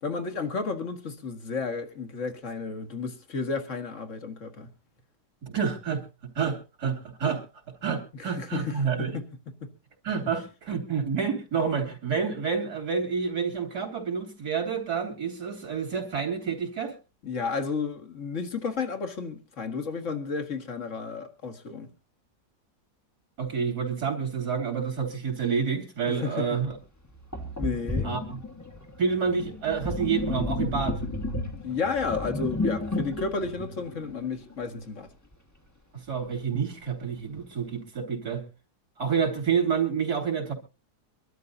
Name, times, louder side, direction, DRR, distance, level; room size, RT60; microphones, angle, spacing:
voice 1, 0.0-4.7 8.1-9.7 17.2-21.9 26.1-26.5 27.6-28.1 31.5-35.1, left 4 dB, 50° left, 2.1 m, -32 dB
voice 2, 5.4-6.0 6.4-7.4 7.8-9.2 10.0-16.9 23.4-26.8 28.0-28.2 29.0-31.0 35.9-38.4 39.0-40.5, right 6 dB, 75° right, 3.5 m, -28 dB
Sink (filling or washing), 26.6-26.7 27.3-34.6, left 2 dB, 10° left, 1.3 m, -32 dB
25.0 x 12.5 x 2.7 m
omnidirectional pair, 1.7 m